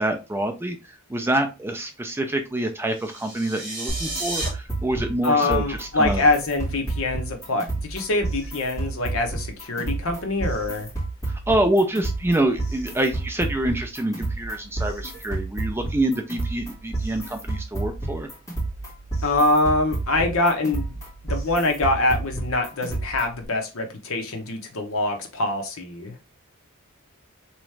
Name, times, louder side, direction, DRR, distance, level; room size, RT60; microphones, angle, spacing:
voice 1, 0.0-6.2 11.3-18.3, right 1 dB, 10° right, 0.4 m, -26 dB
sound 1, 2.9-4.5, right 2 dB, 40° right, 2.4 m, -32 dB
sound 2, 3.9-23.4, right 2 dB, 15° left, 1.8 m, -31 dB
voice 2, 5.2-10.9 19.2-20.9 21.2-26.1, left 2 dB, 65° left, 0.9 m, -24 dB
3.6 x 3.0 x 3.2 m
head